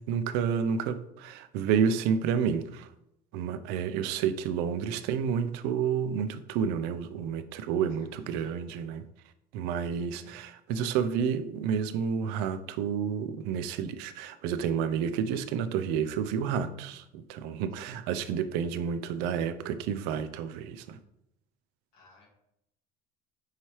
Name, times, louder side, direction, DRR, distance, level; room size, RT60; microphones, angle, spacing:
voice 1, 0.0-2.9 3.3-9.0 9.5-21.0, right 7 dB, 80° right, 11 dB, 0.4 m, -30 dB
voice 2, 7.8-8.6 10.2-10.4 17.7-17.8 21.9-22.3, left 2 dB, 75° left, -1 dB, 1.5 m, -55 dB
5.6 x 3.1 x 2.9 m, 0.81 s
cardioid pair, 175°, 17 cm